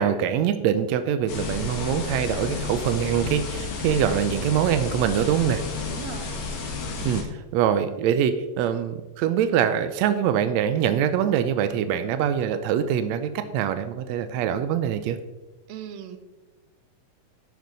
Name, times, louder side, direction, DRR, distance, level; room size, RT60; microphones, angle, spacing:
voice 1, 0.0-5.6 7.0-7.2 7.5-15.2, right 9 dB, 90° right, 10 dB, 1.6 m, -24 dB
sound 1, 1.3-7.2, left 4 dB, 85° left, 3.5 m, -31 dB
voice 2, 5.9-6.4 15.7-16.2, right 8 dB, 70° right, 9 dB, 1.8 m, -38 dB
12.0 x 9.4 x 4.0 m, 1.1 s
omnidirectional pair, 3.8 m